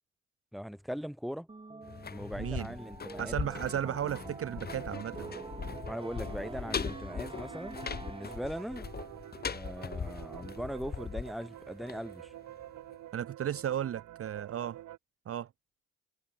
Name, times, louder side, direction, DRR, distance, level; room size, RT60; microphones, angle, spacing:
voice 1, 0.5-1.5 2.0-3.4 3.8-4.0 5.9-8.9 9.4-12.3, equal, ahead, 2.5 m, -40 dB
sound 1, 1.5-8.8, right 3 dB, 15° right, 2.0 m, -46 dB
sound 2, 1.8-12.6 12.9-13.0, left 6 dB, 30° left, 1.1 m, -40 dB
voice 2, 2.4-2.7 3.2-5.3 13.1-14.8 15.3-15.5, right 10 dB, 50° right, 0.7 m, -34 dB
sound 3, 4.0-15.0, right 14 dB, 80° right, 3.4 m, -48 dB
cardioid pair, 90°, 30 cm